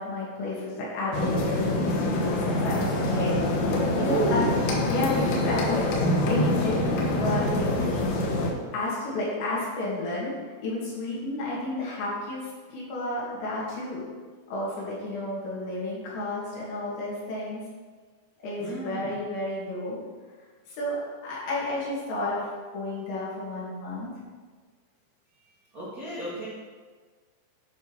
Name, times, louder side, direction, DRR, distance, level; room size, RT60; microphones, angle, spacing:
voice 1, 0.0-3.4 4.0-4.5 4.8-6.8 7.1-7.6 8.7-10.3 10.6-14.0 14.5-17.6 18.4-20.0 20.8-22.5 22.7-24.1, left 2 dB, 75° left, -6 dB, 4.7 m, -31 dB
sound 1, 1.1-8.5, left 1 dB, 90° left, 3.5 m, -25 dB
voice 2, 3.9-4.6 18.6-19.1 25.7-26.5, right 3 dB, 60° right, -9 dB, 0.9 m, -30 dB
10.0 x 5.5 x 5.3 m, 1.5 s
omnidirectional pair, 5.1 m